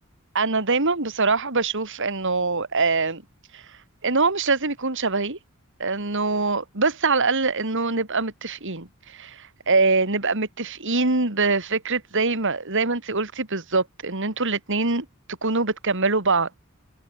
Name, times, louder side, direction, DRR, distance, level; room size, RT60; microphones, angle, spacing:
voice 1, 0.3-3.2 3.5-3.6 4.0-5.4 5.8-15.1 15.4-16.5, right 3 dB, 60° right, 3.6 m, -23 dB
head